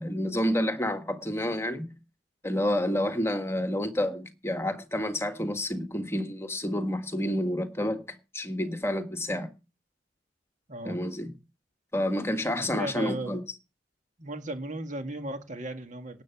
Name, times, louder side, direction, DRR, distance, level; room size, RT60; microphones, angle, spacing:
voice 1, 0.0-1.9 2.4-9.5 10.8-11.3 11.9-13.4, left 1 dB, 15° left, 1.6 m, -29 dB
voice 2, 12.6-13.4 14.2-16.2, right 1 dB, 45° right, 1.9 m, -36 dB
18.5 x 7.9 x 5.9 m
head